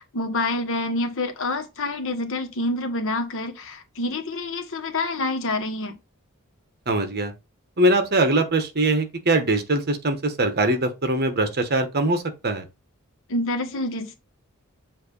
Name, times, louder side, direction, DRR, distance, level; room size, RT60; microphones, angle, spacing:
voice 1, 0.0-6.0 13.3-14.1, left 2 dB, 65° left, 1.3 m, -27 dB
voice 2, 6.9-7.3 7.8-12.6, right 2 dB, 45° right, 1.2 m, -22 dB
7.5 x 2.7 x 5.3 m
head